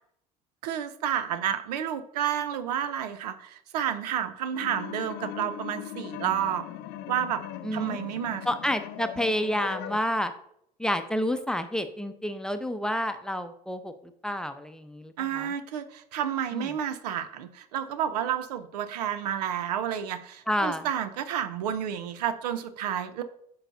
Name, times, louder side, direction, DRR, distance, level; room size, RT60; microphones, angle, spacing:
voice 1, 0.6-6.6 7.1-7.4 7.7-8.5 15.2-23.2, right 9 dB, 80° right, 12 dB, 0.6 m, -30 dB
sound 1, 4.5-10.0, left 12 dB, 55° left, 0.4 m, -39 dB
voice 2, 7.6-8.0 8.4-10.3 10.8-13.9 14.2-15.5 16.5-16.7 20.5-20.9, equal, 5° left, 8 dB, 0.7 m, -29 dB
8.9 x 5.5 x 2.6 m, 0.70 s
hypercardioid pair, 65°, 20 cm